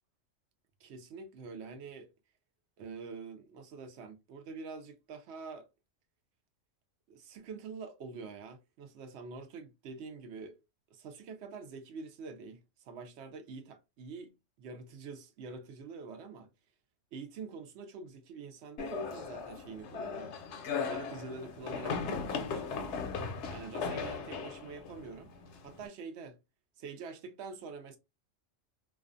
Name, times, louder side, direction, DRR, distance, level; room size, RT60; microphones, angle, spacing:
voice 1, 0.8-2.1 2.8-5.7 7.1-10.6 10.9-16.5 17.1-20.3 20.9-23.0 23.5-25.3 25.6-26.4 26.8-28.0, right 4 dB, 65° right, 0.8 m, -46 dB
sound 1, 18.8-25.9, left 5 dB, 70° left, 0.8 m, -38 dB
2.4 x 2.2 x 2.4 m
omnidirectional pair, 1.3 m